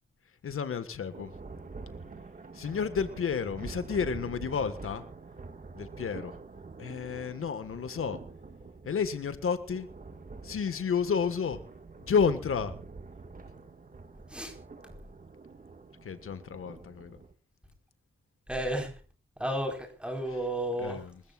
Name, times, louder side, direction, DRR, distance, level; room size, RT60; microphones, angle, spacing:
voice 1, 0.4-1.3 2.5-5.0 5.7-6.4 6.8-8.2 8.8-9.9 10.4-11.6 12.1-12.7 16.0-17.2 20.8-21.2, left 6 dB, 90° left, 1.6 m, -31 dB
Thunder, 1.1-17.3, right 4 dB, 40° right, 1.9 m, -46 dB
voice 2, 18.5-19.0 19.4-21.0, right 1 dB, 5° right, 4.5 m, -32 dB
26.5 x 15.0 x 2.5 m
wide cardioid pair, 115°, 21 cm